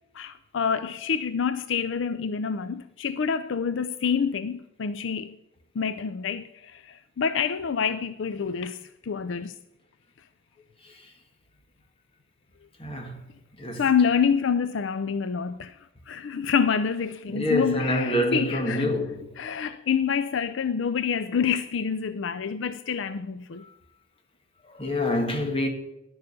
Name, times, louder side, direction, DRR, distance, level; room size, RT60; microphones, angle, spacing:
voice 1, 0.1-5.4 5.7-9.6 13.7-15.8 16.1-18.9 19.4-23.7, left 6 dB, 65° left, 0.4 m, -27 dB
voice 2, 12.8-13.2 13.6-13.8 17.3-19.6 24.6-25.7, left 1 dB, 25° left, 1.6 m, -27 dB
11.0 x 6.9 x 6.5 m
head